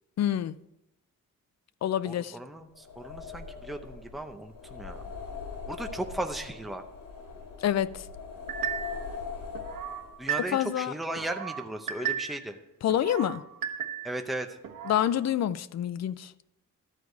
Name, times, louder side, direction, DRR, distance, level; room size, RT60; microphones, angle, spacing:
voice 1, 0.2-0.5 1.8-2.4 7.6-8.0 10.5-10.9 12.8-13.4 14.8-16.3, left 11 dB, 55° left, 0.4 m, -27 dB
voice 2, 2.0-5.0 5.7-6.8 10.2-12.6 14.0-14.5, right 1 dB, ahead, 0.7 m, -36 dB
sound 1, 2.7-10.3, left 5 dB, 75° left, 3.0 m, -41 dB
sound 2, 8.5-9.1 9.5-10.8 11.2-12.5 12.9-14.2 14.6-15.1, right 9 dB, 85° right, 1.3 m, -35 dB
13.0 x 4.8 x 8.1 m
wide cardioid pair, 140°, 33 cm